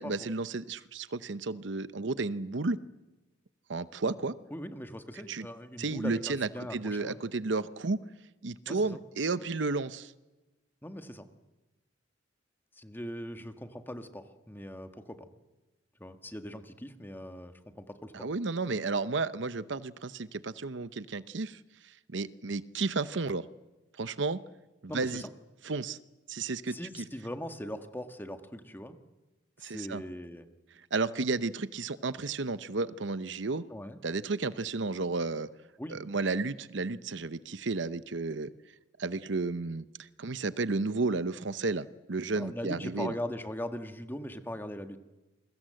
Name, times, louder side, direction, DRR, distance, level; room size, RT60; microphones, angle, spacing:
voice 1, 0.0-2.8 3.7-4.3 5.3-5.5 5.8-8.0 8.4-10.1 18.1-21.6 22.1-23.5 24.0-24.4 24.8-25.2 25.6-26.0 26.3-27.1 29.6-30.0 30.9-33.6 34.0-35.5 35.9-38.5 39.0-43.1, right 3 dB, 65° right, 14 dB, 0.8 m, -32 dB
voice 2, 4.5-7.1 8.7-9.0 10.8-11.3 12.8-15.3 16.0-18.3 24.9-25.3 26.7-29.0 29.6-30.5 33.7-34.0 35.8-36.0 42.4-45.0, equal, 10° left, 7 dB, 1.7 m, -40 dB
29.0 x 23.0 x 7.8 m, 1.1 s
head